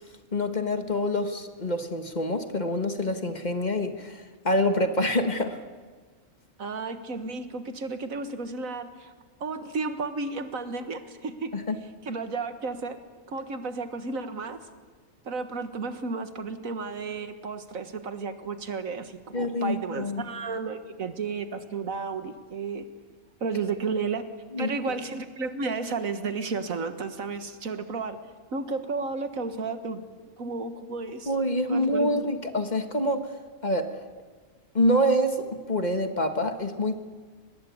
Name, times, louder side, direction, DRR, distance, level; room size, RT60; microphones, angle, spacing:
voice 1, 0.3-5.6 11.5-11.8 19.3-20.3 24.5-24.7 31.3-33.3 33.6-34.0 34.7-36.9, left 1 dB, 35° left, 7 dB, 1.6 m, -26 dB
voice 2, 6.6-9.1 9.4-11.5 12.0-13.0 13.3-14.7 15.2-22.9 23.4-24.2 24.6-28.2 28.5-30.0 30.4-31.3 31.7-32.2, right 4 dB, 90° right, 10 dB, 1.9 m, -33 dB
24.5 x 19.5 x 8.6 m, 1.5 s
omnidirectional pair, 1.4 m